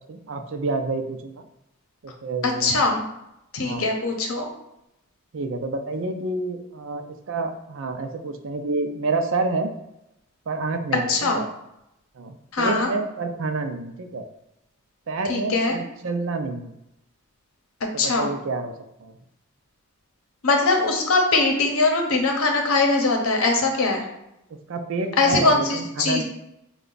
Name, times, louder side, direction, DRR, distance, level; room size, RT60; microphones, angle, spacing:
voice 1, 0.1-1.4 2.0-2.8 3.6-3.9 5.3-9.7 10.5-11.4 12.2-14.2 15.1-16.7 17.9-19.1 24.7-26.2, right 3 dB, 65° right, 6 dB, 0.5 m, -28 dB
voice 2, 2.4-3.0 3.5-4.5 11.1-11.4 12.5-12.9 15.3-15.7 18.0-18.3 20.4-24.0 25.2-26.2, left 3 dB, 75° left, 2 dB, 0.8 m, -21 dB
4.3 x 2.3 x 3.9 m, 0.85 s
head